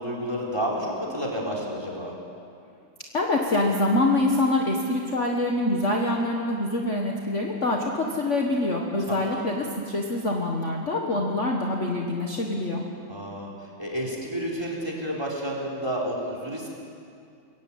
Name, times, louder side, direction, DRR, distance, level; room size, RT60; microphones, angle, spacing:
voice 1, 0.0-2.1 9.1-9.4 13.1-16.7, equal, 10° right, -2 dB, 3.8 m, -30 dB
voice 2, 3.1-12.8, left 2 dB, 40° left, 0 dB, 1.7 m, -25 dB
22.5 x 16.0 x 8.8 m, 2.4 s
omnidirectional pair, 2.2 m